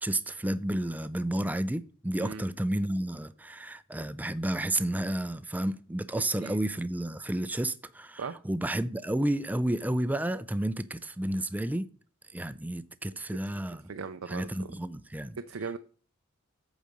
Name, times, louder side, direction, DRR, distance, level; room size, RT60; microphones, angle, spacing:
voice 1, 0.0-11.9 12.3-13.8 14.3-15.4, right 1 dB, 10° right, 0.4 m, -31 dB
voice 2, 13.9-14.7 15.4-15.8, right 5 dB, 90° right, 0.5 m, -38 dB
8.3 x 4.9 x 5.2 m
head